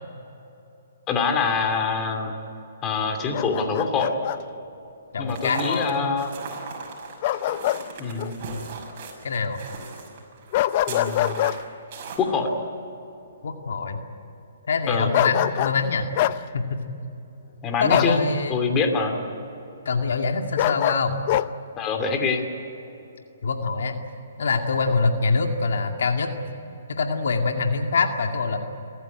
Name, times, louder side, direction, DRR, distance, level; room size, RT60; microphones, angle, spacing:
voice 1, 1.1-2.3 2.8-4.2 5.2-6.3 8.0-8.7 10.9-11.3 12.2-12.5 14.9-15.1 17.6-19.2 21.8-22.4, left 4 dB, 20° left, 5 dB, 2.7 m, -25 dB
Bark, 3.3-4.4 7.2-7.8 8.2-8.3 10.5-11.6 15.1-15.8 16.2-16.4 17.9-18.2 20.6-21.5, left 14 dB, 40° left, 0.6 m, -24 dB
voice 2, 5.1-6.1 9.2-9.6 13.4-14.0 14.6-16.1 16.5-16.8 17.8-18.6 19.9-21.2 23.4-24.0 24.4-26.3 26.9-28.6, left 4 dB, 75° left, 4 dB, 2.2 m, -24 dB
sound 1, 5.3-12.2, right 5 dB, 40° right, 6.1 m, -38 dB
29.0 x 14.0 x 9.8 m, 3.0 s
hypercardioid pair, 145°, 0 cm